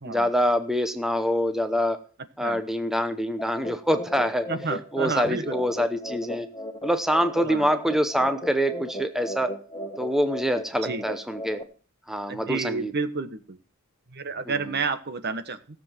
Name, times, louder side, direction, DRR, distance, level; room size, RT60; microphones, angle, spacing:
voice 1, 0.0-2.0 2.4-4.5 4.9-6.5 6.8-9.5 10.0-11.6 12.1-12.9 14.5-14.6, equal, ahead, 8 dB, 0.8 m, -25 dB
sound 1, 3.4-11.6, equal, 20° left, 1.3 m, -36 dB
voice 2, 4.5-5.6 7.4-7.7 10.8-11.0 12.3-13.6 14.1-15.6, right 4 dB, 50° right, 10 dB, 1.3 m, -30 dB
17.0 x 7.5 x 6.0 m, 0.40 s
head